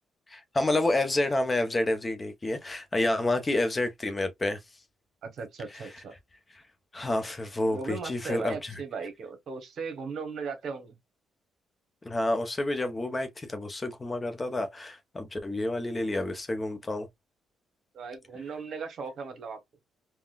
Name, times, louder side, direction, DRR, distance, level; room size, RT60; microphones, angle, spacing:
voice 1, 0.3-4.6 6.9-8.7 12.0-17.1, left 2 dB, 25° left, 0.7 m, -29 dB
voice 2, 5.2-6.1 7.7-11.0 17.9-19.6, right 5 dB, 60° right, 1.0 m, -37 dB
3.6 x 2.2 x 2.4 m
cardioid pair, 90°, 0 cm